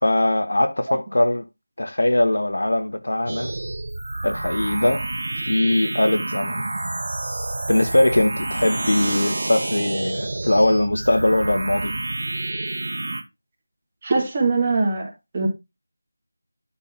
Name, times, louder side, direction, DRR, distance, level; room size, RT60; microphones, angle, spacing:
voice 1, 0.0-1.4 1.8-3.5 4.2-5.1 5.5-6.6 7.7-11.9, left 1 dB, 85° left, 1.5 m, -21 dB
sound 1, 3.3-13.2, right 2 dB, 60° right, 1.1 m, -28 dB
voice 2, 14.0-15.5, right 3 dB, 20° right, 2.0 m, -22 dB
11.5 x 3.8 x 4.4 m
figure-of-eight pair, 175°, 0 cm